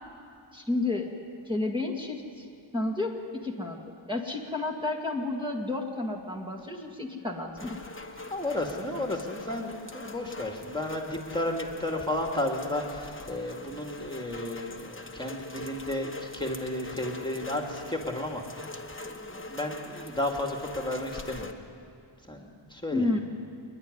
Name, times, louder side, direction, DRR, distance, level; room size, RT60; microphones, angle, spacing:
voice 1, 0.5-1.1 1.5-2.5 2.7-7.8 22.9-23.2, left 2 dB, 10° right, -2 dB, 2.1 m, -31 dB
Rain, 7.6-21.5, left 2 dB, 25° left, 1.3 m, -43 dB
voice 2, 8.3-18.7 19.0-21.5 22.3-23.1, left 1 dB, 10° left, 1 dB, 2.2 m, -33 dB
28.0 x 10.5 x 9.8 m, 2.5 s
wide cardioid pair, 60°, 47 cm